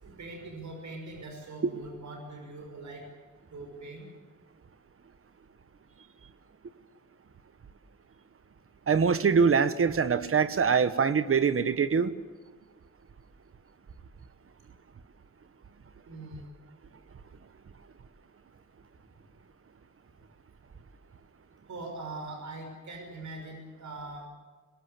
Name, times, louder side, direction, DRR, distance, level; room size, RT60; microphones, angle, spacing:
voice 1, 0.0-3.1 3.5-4.1 16.0-16.5 19.1-19.2 21.7-24.3, right 2 dB, 65° right, 2 dB, 6.0 m, -42 dB
voice 2, 8.9-12.1, right 6 dB, 45° right, 13 dB, 1.2 m, -24 dB
22.0 x 21.5 x 8.5 m, 1.4 s
wide cardioid pair, 165°, 31 cm